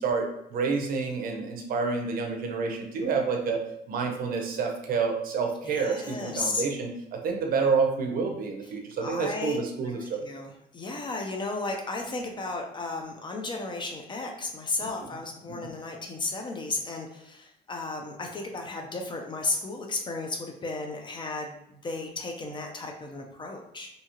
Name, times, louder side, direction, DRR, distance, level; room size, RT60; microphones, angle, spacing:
voice 1, 0.0-3.6 3.9-10.2 14.8-14.9 15.5-15.6, right 5 dB, 60° right, 2 dB, 0.6 m, -28 dB
voice 2, 5.6-6.6 8.6-8.7 9.0-9.6 9.8-23.9, left 3 dB, 30° left, 2 dB, 0.5 m, -34 dB
2.7 x 2.3 x 2.9 m, 0.77 s
cardioid pair, 110°, 17 cm